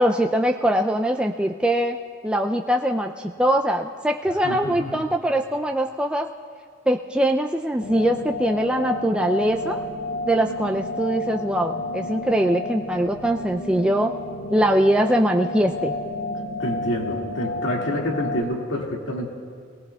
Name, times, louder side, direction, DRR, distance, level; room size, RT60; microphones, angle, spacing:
voice 1, 0.0-2.0 2.2-6.3 6.9-9.8 10.3-14.1 14.5-15.9, right 1 dB, 5° right, 2 dB, 0.3 m, -22 dB
voice 2, 4.4-5.0 16.6-19.3, equal, 80° left, -1 dB, 2.1 m, -27 dB
sound 1, 7.8-18.4, left 2 dB, 55° left, 0.8 m, -31 dB
22.5 x 18.5 x 2.3 m, 2.1 s
head